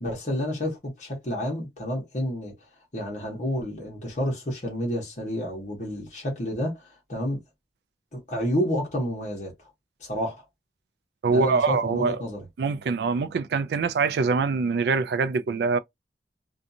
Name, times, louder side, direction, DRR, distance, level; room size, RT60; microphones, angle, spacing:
voice 1, 0.0-2.5 2.9-7.4 8.1-9.5 10.0-10.4 11.3-12.4, equal, 40° left, 1.0 m, -30 dB
voice 2, 11.2-12.2 12.6-15.8, right 4 dB, 65° right, 0.3 m, -24 dB
2.6 x 2.3 x 2.6 m
head